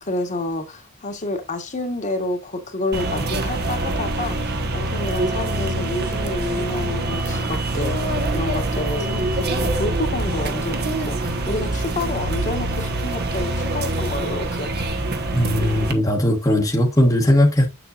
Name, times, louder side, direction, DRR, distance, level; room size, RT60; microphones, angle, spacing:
voice 1, 0.0-14.9, left 2 dB, 35° left, 1.4 m, -29 dB
sound 1, 2.9-15.9, right 2 dB, 45° right, 1.2 m, -25 dB
voice 2, 15.3-17.7, left 1 dB, 15° left, 1.1 m, -18 dB
7.7 x 7.1 x 2.5 m
head